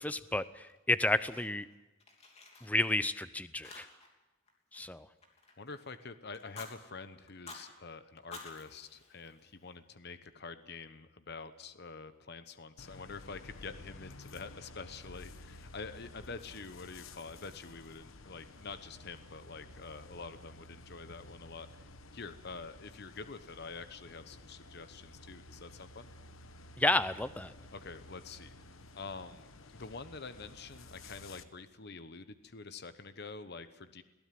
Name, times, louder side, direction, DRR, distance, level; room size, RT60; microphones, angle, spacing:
voice 1, 0.0-1.7 2.6-3.9 4.7-5.1 26.8-27.5, left 2 dB, 5° left, 14 dB, 0.6 m, -31 dB
Fire, 0.6-1.7 2.0-3.2 3.6-4.2 4.5-5.9 6.3-6.7 7.3-7.7 8.2-9.7, left 3 dB, 30° left, 3.2 m, -52 dB
voice 2, 5.6-26.1 27.7-28.5 28.9-34.0, left 4 dB, 55° left, 11 dB, 1.0 m, -47 dB
sound 1, 12.8-31.4, left 2 dB, 85° left, 1.1 m, -53 dB
22.0 x 16.0 x 7.7 m, 1.1 s
head